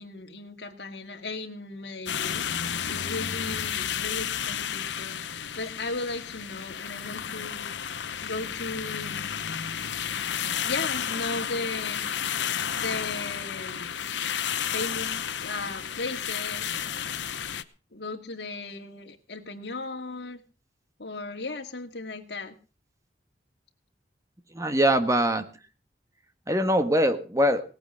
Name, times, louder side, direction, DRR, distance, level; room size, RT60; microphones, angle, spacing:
voice 1, 0.0-7.7 8.2-9.3 10.6-12.0 12.8-14.1 14.7-17.3 17.9-20.4 21.0-22.5, left 3 dB, 65° left, 3 dB, 2.3 m, -36 dB
sound 1, 2.1-17.6, left 8 dB, 90° left, 0.9 m, -32 dB
voice 2, 24.5-25.4 26.5-27.6, equal, 20° right, 9 dB, 1.4 m, -22 dB
18.0 x 8.9 x 6.4 m, 0.37 s
head